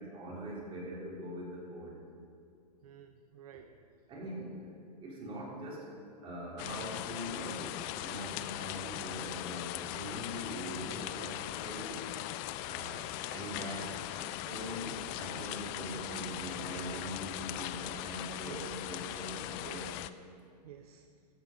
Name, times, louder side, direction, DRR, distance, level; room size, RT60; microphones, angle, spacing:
voice 1, 0.0-2.0 3.5-3.6 4.1-4.7 5.0-5.9 6.2-12.0 12.6-19.8, equal, 25° right, -4 dB, 3.4 m, -42 dB
voice 2, 2.8-3.7 16.7-17.0 18.5-18.6 19.6-19.8 20.6-21.1, right 11 dB, 60° right, 8 dB, 0.6 m, -51 dB
sound 1, 6.6-20.1, left 14 dB, 35° left, 0.4 m, -40 dB
14.5 x 8.3 x 5.1 m, 2.5 s
hypercardioid pair, 125°, 21 cm